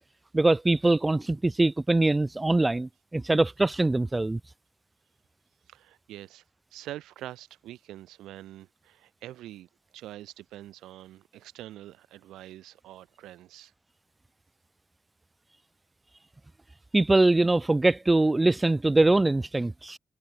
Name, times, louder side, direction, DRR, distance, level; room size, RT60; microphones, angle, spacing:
voice 1, 0.3-4.4 16.9-20.0, right 2 dB, 20° right, 1.0 m, -23 dB
voice 2, 5.7-6.4 6.7-13.7, right 14 dB, 75° right, 3.7 m, -45 dB
hypercardioid pair, 40°, 0 cm